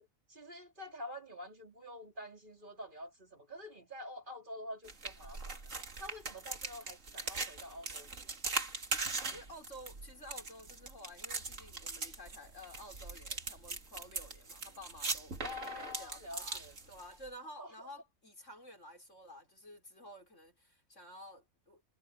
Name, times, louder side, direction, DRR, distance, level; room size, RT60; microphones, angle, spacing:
voice 1, 0.0-5.6 6.0-8.3 15.4-16.7 17.6-17.7, left 1 dB, 35° right, 4.1 m, -47 dB
sound 1, 4.8-17.3, right 3 dB, 60° right, 2.8 m, -40 dB
voice 2, 9.3-21.8, equal, 55° left, 6.5 m, -52 dB
omnidirectional pair, 1.5 m